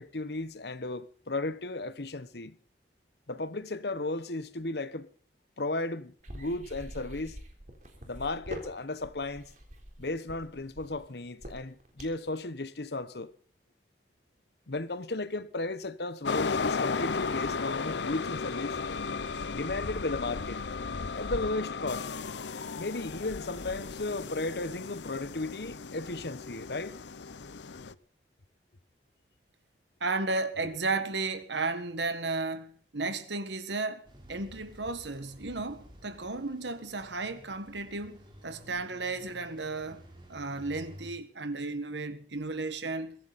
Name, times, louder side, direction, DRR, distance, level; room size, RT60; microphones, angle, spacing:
voice 1, 0.0-2.6 3.3-5.1 5.6-7.4 8.1-9.5 10.0-13.3 14.7-18.8 19.5-20.6 21.1-22.1 22.8-27.0, left 2 dB, 70° left, 1.1 m, -35 dB
sound 1, 6.2-12.3, equal, 45° right, 3.8 m, -44 dB
sound 2, 16.2-27.9, left 4 dB, 85° left, 0.7 m, -35 dB
voice 2, 30.0-40.0 40.3-43.2, right 3 dB, 90° right, 1.7 m, -34 dB
sound 3, 34.1-41.1, equal, 25° right, 3.8 m, -52 dB
23.0 x 15.0 x 4.2 m
head